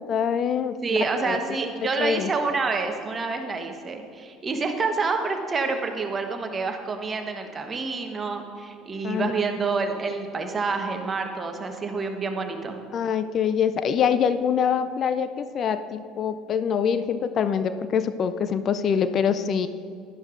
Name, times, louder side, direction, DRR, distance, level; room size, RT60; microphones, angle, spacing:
voice 1, 0.0-1.4 2.0-2.3 9.0-9.3 12.9-19.7, left 7 dB, 45° left, 11 dB, 0.4 m, -25 dB
voice 2, 0.8-12.8, right 4 dB, 30° right, 5 dB, 1.1 m, -28 dB
11.0 x 11.0 x 2.5 m, 2.3 s
hypercardioid pair, 65°, 0 cm